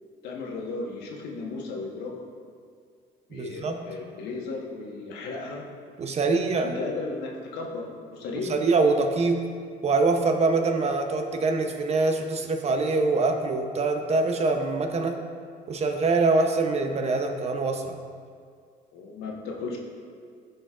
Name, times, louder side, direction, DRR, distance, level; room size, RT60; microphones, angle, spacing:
voice 1, 0.2-2.3 3.3-5.6 6.1-8.5 18.9-19.8, left 3 dB, 80° left, -1 dB, 1.3 m, -35 dB
voice 2, 3.3-3.8 6.0-6.7 8.5-9.5 9.8-15.3 15.7-18.0, right 3 dB, 40° right, 5 dB, 0.7 m, -24 dB
12.5 x 5.3 x 2.5 m, 2.1 s
cardioid pair, 110°, 17 cm